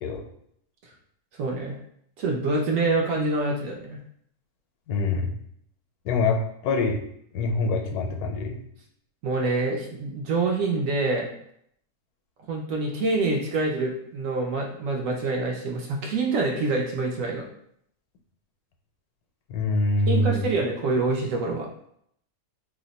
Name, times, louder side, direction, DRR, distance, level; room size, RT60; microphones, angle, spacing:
voice 1, 1.4-1.8 2.2-4.0 9.2-11.3 12.5-17.4 20.1-21.7, right 3 dB, 70° right, 0 dB, 0.9 m, -26 dB
voice 2, 4.9-5.3 6.0-7.0 7.3-8.6 19.5-20.5, left 3 dB, 80° left, 3 dB, 1.1 m, -25 dB
2.7 x 2.1 x 3.9 m, 0.70 s
omnidirectional pair, 1.6 m